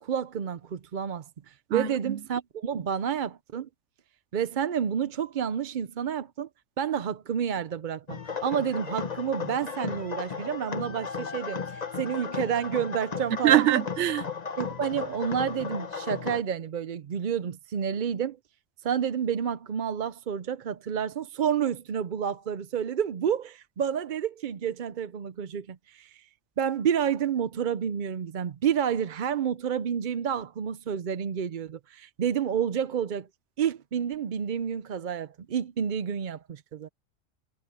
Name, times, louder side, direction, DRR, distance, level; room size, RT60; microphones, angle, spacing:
voice 1, 0.0-3.7 4.3-6.5 6.8-13.8 14.6-18.4 18.8-26.3 26.6-33.3 33.6-36.9, right 8 dB, 50° right, 0.7 m, -30 dB
voice 2, 1.7-2.2 13.4-14.2, right 13 dB, 75° right, 1.0 m, -23 dB
sound 1, 8.1-16.4, left 5 dB, 35° left, 1.1 m, -35 dB
omnidirectional pair, 1.3 m